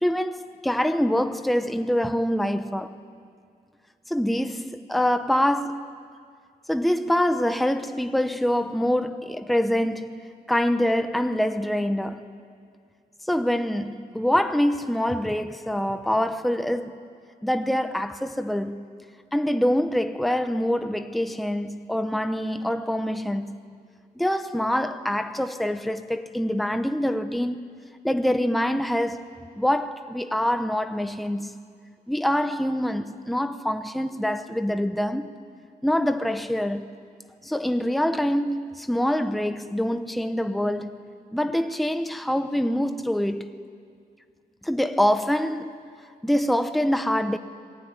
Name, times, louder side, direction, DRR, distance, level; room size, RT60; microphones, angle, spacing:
voice 1, 0.0-3.0 4.1-5.8 6.7-10.2 10.5-12.3 13.2-17.0 17.4-18.9 19.3-23.6 24.2-27.6 28.0-29.3 29.5-31.6 32.1-35.3 35.8-36.9 37.4-43.6 44.6-45.8 46.2-47.4, equal, ahead, 0.8 m, -25 dB
26.0 x 21.5 x 9.7 m
wide cardioid pair, 155°, 17 cm